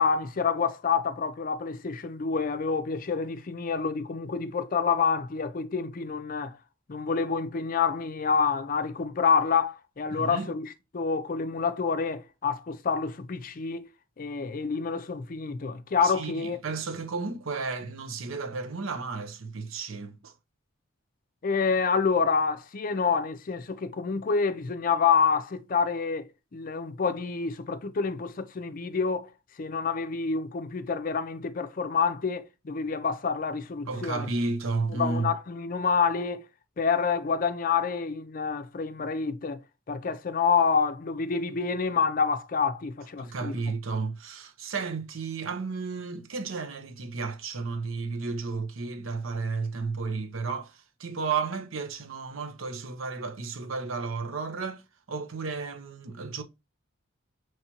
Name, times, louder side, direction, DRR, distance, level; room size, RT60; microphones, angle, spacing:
voice 1, 0.0-6.6 6.9-10.7 10.9-13.9 14.2-16.6 21.4-29.3 29.6-34.3 34.9-36.4 36.8-39.6 39.9-43.6, left 5 dB, 45° left, 0.5 m, -27 dB
voice 2, 10.1-10.5 16.0-20.3 33.9-35.3 43.2-54.8 55.1-56.4, right 4 dB, 85° right, 0.7 m, -33 dB
5.7 x 3.2 x 2.8 m
head